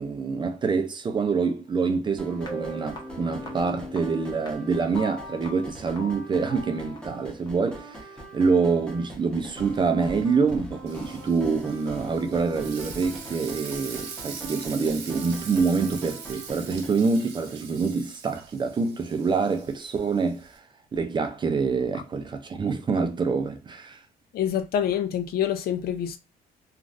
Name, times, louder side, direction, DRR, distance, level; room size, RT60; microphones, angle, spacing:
voice 1, 0.0-20.6 20.9-24.0, right 4 dB, 25° right, 0.5 m, -26 dB
sound 1, 2.2-16.9, right 1 dB, 5° left, 1.0 m, -43 dB
sound 2, 2.4-7.5, left 1 dB, 25° left, 1.2 m, -40 dB
Frying (food), 10.9-20.6, right 6 dB, 80° right, 0.9 m, -42 dB
voice 2, 24.3-26.2, left 9 dB, 65° left, 0.6 m, -26 dB
3.1 x 2.4 x 2.5 m
cardioid pair, 110°, 17 cm